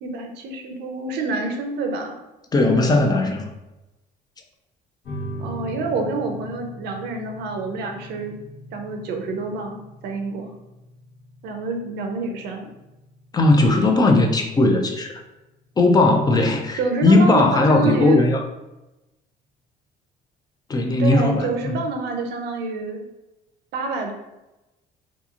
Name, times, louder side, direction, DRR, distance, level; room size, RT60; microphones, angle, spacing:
voice 1, 0.0-2.2 5.4-8.3 8.7-10.5 11.4-12.6 16.8-18.2 21.0-23.0 23.7-24.1, right 3 dB, 80° right, 4 dB, 0.5 m, -27 dB
voice 2, 2.5-3.5 13.3-15.2 15.8-18.4 20.7-21.7, left 2 dB, 25° left, 3 dB, 0.3 m, -18 dB
sound 1, 5.0-16.0, equal, 85° left, 1.1 m, -40 dB
2.9 x 2.5 x 2.4 m, 0.97 s
cardioid pair, 110°, 17 cm